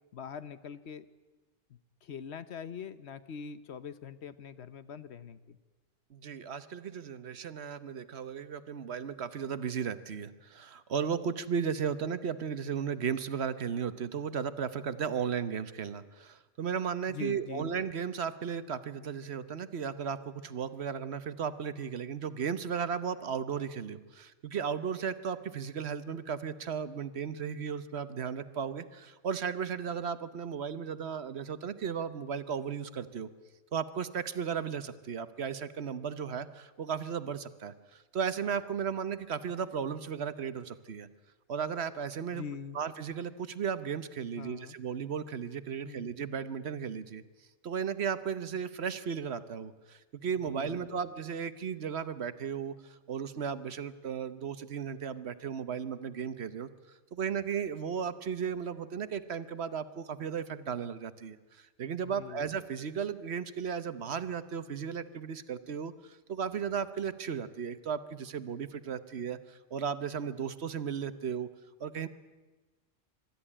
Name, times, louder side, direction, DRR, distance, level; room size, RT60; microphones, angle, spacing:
voice 1, 0.1-1.1 1.7-5.6 17.1-17.7 42.3-42.8 44.4-44.8 45.8-46.1 50.4-51.0 62.0-62.5, left 7 dB, 60° left, 14 dB, 1.1 m, -43 dB
voice 2, 6.1-33.3 33.7-41.1 41.5-42.4 42.7-47.2 47.6-56.7 57.1-71.5 71.8-72.1, right 7 dB, 60° right, 14 dB, 1.1 m, -35 dB
24.5 x 13.0 x 9.9 m, 1.2 s
omnidirectional pair, 1.3 m